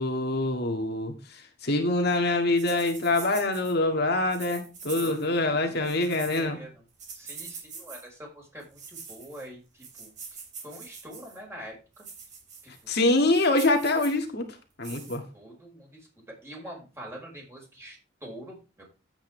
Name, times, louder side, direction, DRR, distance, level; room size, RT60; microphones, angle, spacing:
voice 1, 0.0-6.6 12.9-14.5 14.8-15.2, left 2 dB, 60° left, 2.1 m, -25 dB
sound 1, 2.6-3.7 4.3-5.4 5.7-6.4 7.0-8.0 8.6-9.5 9.8-11.4 12.0-12.8 13.2-14.2 14.8-15.2, right 5 dB, 40° right, 3.7 m, -43 dB
voice 2, 5.0-6.8 7.1-10.1 10.6-12.0 12.6-12.7 15.3-16.1 16.4-18.8, equal, 15° right, 5.0 m, -45 dB
10.5 x 8.8 x 3.4 m
head